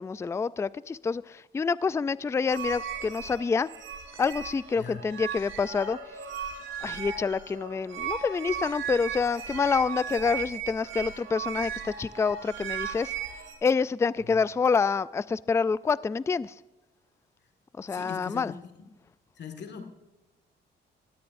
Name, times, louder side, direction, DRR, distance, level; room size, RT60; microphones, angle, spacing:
voice 1, 0.0-3.7 4.2-6.0 6.8-13.1 13.6-16.5 17.8-18.5, left 5 dB, 15° left, 0.3 m, -27 dB
sound 1, 2.5-13.5, right 7 dB, 80° right, 2.7 m, -37 dB
voice 2, 17.9-18.6 19.4-19.9, left 6 dB, 60° left, 1.9 m, -40 dB
17.5 x 13.0 x 2.6 m
cardioid pair, 90°, 20 cm